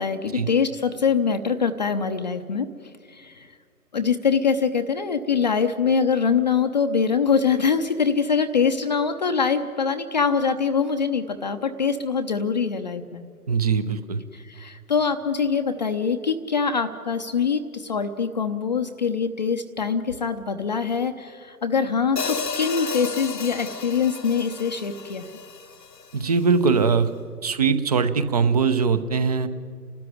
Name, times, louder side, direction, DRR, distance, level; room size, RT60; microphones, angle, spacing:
voice 1, 0.0-2.7 3.1-3.5 3.9-13.2 14.3-25.3, left 6 dB, 25° left, 6 dB, 0.7 m, -24 dB
voice 2, 13.5-14.2 26.1-27.1 27.4-29.5, right 5 dB, 25° right, 13 dB, 0.7 m, -21 dB
Hi-hat, 22.2-26.3, left 5 dB, 85° left, 1.3 m, -33 dB
30.0 x 13.0 x 9.9 m, 2.1 s
figure-of-eight pair, 135°, 48 cm